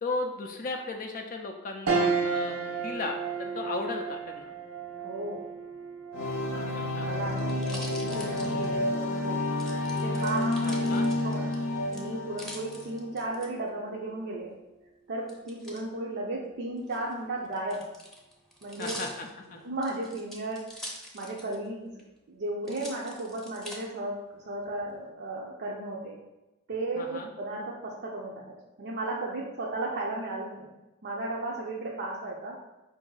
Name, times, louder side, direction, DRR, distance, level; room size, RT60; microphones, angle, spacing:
voice 1, 0.0-4.5 6.7-7.3 10.6-11.1 18.8-19.6 27.0-27.3, left 3 dB, 40° left, 3 dB, 0.4 m, -36 dB
sound 1, 1.9-11.5 11.9-12.0 13.4-13.8, right 5 dB, 90° right, 0.7 m, -35 dB
voice 2, 5.0-5.4 6.5-9.5 9.9-11.5 11.9-14.5 15.1-17.9 18.6-19.1 19.5-22.0 22.3-26.2 26.7-30.7 31.0-32.6, right 2 dB, 55° right, -3 dB, 0.5 m, -35 dB
sound 2, 6.1-13.0, left 1 dB, 90° left, 0.7 m, -30 dB
sound 3, 6.7-9.1 9.6-11.6 11.9-13.5 15.3-15.8 16.8-21.7 22.0-22.1 22.6-23.8 24.4-24.9, equal, ahead, 0.7 m, -44 dB
4.9 x 2.6 x 3.8 m, 1.0 s
head